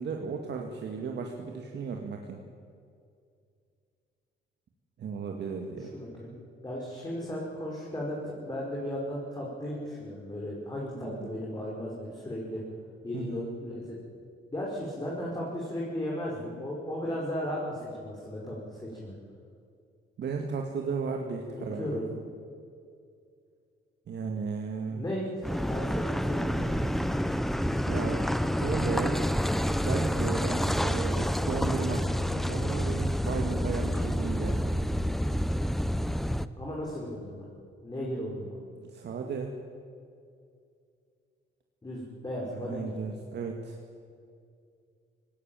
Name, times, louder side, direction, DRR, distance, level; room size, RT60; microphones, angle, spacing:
voice 1, 0.0-2.4 5.0-5.9 11.0-11.3 13.1-13.4 20.2-22.0 24.1-25.0 27.9-29.2 29.8-32.1 32.3-34.6 38.8-39.5 42.4-43.8, right 5 dB, 60° right, 2 dB, 2.0 m, -35 dB
voice 2, 5.8-6.3 6.6-12.6 13.0-13.9 14.5-19.1 21.5-22.1 24.9-26.7 36.6-37.4 37.8-38.6 41.8-43.0, equal, 20° left, -4 dB, 5.4 m, -35 dB
Car passing by / Idling / Accelerating revving vroom, 25.4-36.5, equal, ahead, 0.8 m, -28 dB
19.0 x 17.5 x 9.0 m, 2.3 s
cardioid pair, 90°, 20 cm